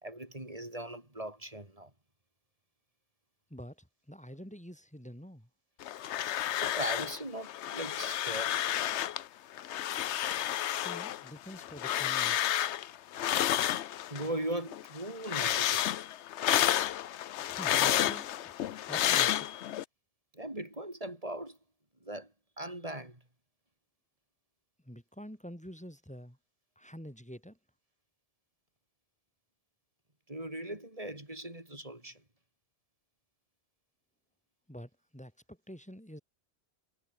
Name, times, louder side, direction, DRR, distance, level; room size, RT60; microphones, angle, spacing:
voice 1, 0.0-1.9 6.6-8.6 14.1-15.9 20.3-21.6 22.0-23.2 30.3-32.2, right 1 dB, 30° right, 4.1 m, -39 dB
voice 2, 3.5-5.5 10.7-12.7 17.4-18.5 18.9-19.5 24.8-26.4 26.8-27.6 34.7-36.2, equal, 5° left, 4.8 m, -47 dB
sound 1, 5.8-7.2 7.4-9.2 9.6-14.3 14.7-19.8, left 12 dB, 75° left, 0.9 m, -31 dB
omnidirectional pair, 1.2 m